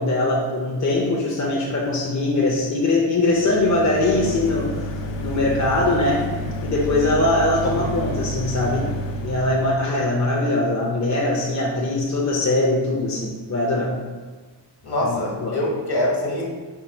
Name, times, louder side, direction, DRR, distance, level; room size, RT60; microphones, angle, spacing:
voice 1, 0.0-6.3 6.6-8.9 9.2-13.9 15.0-15.6, left 2 dB, 40° left, -3 dB, 0.6 m, -22 dB
sound 1, 3.2-9.8, left 1 dB, 85° left, 0.6 m, -30 dB
voice 2, 14.8-16.4, left 1 dB, 60° left, -2 dB, 1.1 m, -24 dB
4.5 x 2.3 x 4.3 m, 1.4 s
wide cardioid pair, 90°, 43 cm